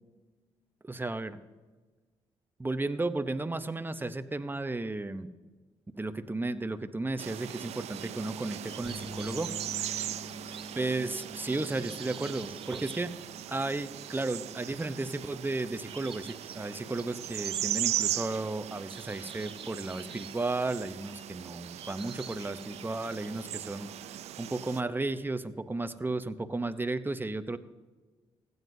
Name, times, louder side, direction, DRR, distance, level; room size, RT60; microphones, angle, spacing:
voice 1, 0.8-1.4 2.6-5.3 5.9-9.5 10.0-10.2 10.7-13.1 13.5-23.9 24.4-27.6, right 2 dB, 20° right, 11 dB, 0.7 m, -34 dB
sound 1, 7.2-24.8, right 12 dB, 80° right, 0.4 m, -39 dB
sound 2, 7.5-8.3 8.6-14.3 14.7-14.8 15.1-15.5 15.8-21.4 21.8-23.7, right 6 dB, 55° right, 0.7 m, -50 dB
sound 3, 8.8-24.7, left 1 dB, 30° left, 3.6 m, -51 dB
16.0 x 9.4 x 2.7 m, 1.3 s
supercardioid pair, 55°, 11 cm